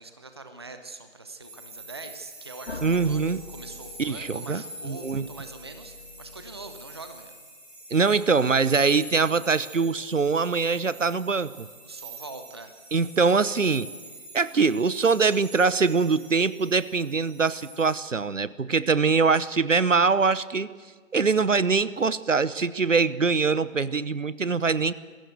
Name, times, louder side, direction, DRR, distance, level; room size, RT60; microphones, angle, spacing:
voice 1, 0.0-7.3 11.8-12.7 18.9-19.3, right 3 dB, 20° right, 8 dB, 0.7 m, -43 dB
sound 1, 1.4-18.0, right 1 dB, 5° right, 3.2 m, -45 dB
sound 2, 2.7-7.4, left 3 dB, 50° left, 2.1 m, -44 dB
voice 2, 2.8-3.4 4.0-5.2 7.9-11.7 12.9-13.9 14.3-20.7 21.1-24.9, right 4 dB, 70° right, 18 dB, 0.9 m, -23 dB
22.0 x 16.0 x 8.0 m, 1.5 s
figure-of-eight pair, 155°, 39 cm